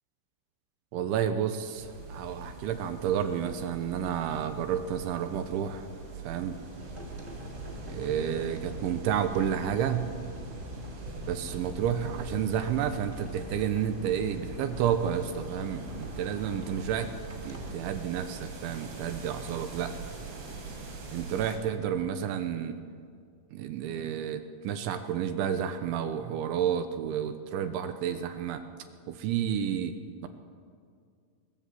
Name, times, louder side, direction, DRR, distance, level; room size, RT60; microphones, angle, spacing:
voice 1, 0.9-5.9 6.2-6.6 7.8-10.1 11.3-17.1 17.4-19.9 21.1-22.7 23.5-28.6 29.1-29.9, right 9 dB, 75° right, 8 dB, 3.3 m, -30 dB
sound 1, 1.8-21.6, right 3 dB, 60° right, 6.5 m, -43 dB
sound 2, 6.8-17.7, left 1 dB, 15° right, 2.1 m, -43 dB
22.0 x 22.0 x 7.7 m, 2.2 s
omnidirectional pair, 5.7 m